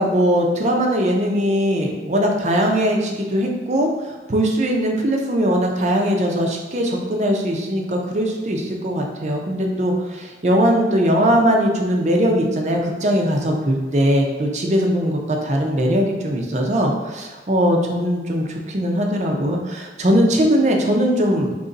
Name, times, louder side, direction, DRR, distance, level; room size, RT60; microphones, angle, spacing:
voice 1, 0.0-21.5, equal, 40° right, 1 dB, 0.5 m, -20 dB
3.8 x 3.0 x 3.9 m, 1.3 s
head